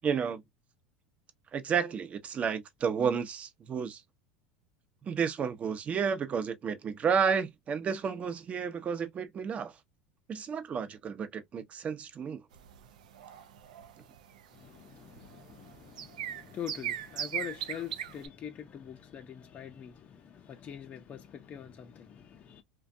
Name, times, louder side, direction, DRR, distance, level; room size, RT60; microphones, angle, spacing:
voice 1, 0.0-0.4 1.5-4.0 5.0-9.8 10.3-12.4, right 6 dB, 35° right, 0.7 m, -31 dB
sound 1, 12.5-18.3, right 10 dB, 85° right, 0.5 m, -39 dB
voice 2, 14.5-22.6, left 9 dB, 40° left, 0.6 m, -44 dB
2.5 x 2.2 x 2.5 m
hypercardioid pair, 95°, 4 cm